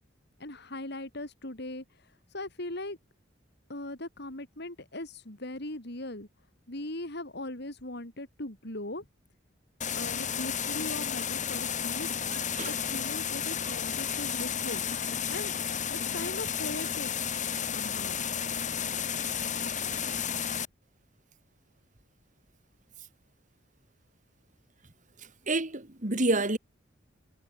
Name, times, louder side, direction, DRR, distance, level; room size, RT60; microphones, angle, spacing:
voice 1, 0.4-3.0 3.7-6.3 6.7-9.1 9.9-12.1 12.7-15.5 16.1-17.1 17.7-18.3, left 1 dB, 60° left, 4.4 m, -39 dB
sound 1, 9.8-20.7, left 8 dB, 40° left, 3.6 m, -32 dB
voice 2, 12.3-12.7 25.2-26.6, right 2 dB, 40° right, 2.7 m, -29 dB
head